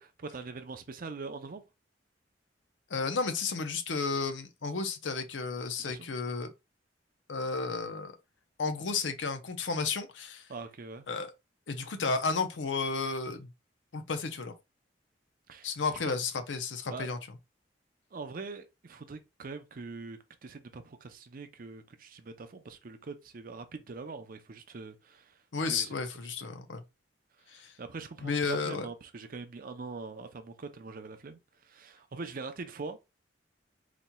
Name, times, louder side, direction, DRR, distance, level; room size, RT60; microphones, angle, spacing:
voice 1, 0.2-1.6 5.8-6.1 10.5-11.0 15.5-15.7 16.1-16.2 16.9-17.1 18.1-25.4 25.7-25.9 27.4-33.0, right 4 dB, 50° right, 0.5 m, -43 dB
voice 2, 2.9-6.5 7.3-8.1 8.6-10.5 11.1-11.3 11.7-13.5 13.9-14.5 15.6-17.2 25.5-26.8 27.5-27.7 28.2-28.9, left 4 dB, 80° left, 0.6 m, -32 dB
4.1 x 2.9 x 2.2 m
head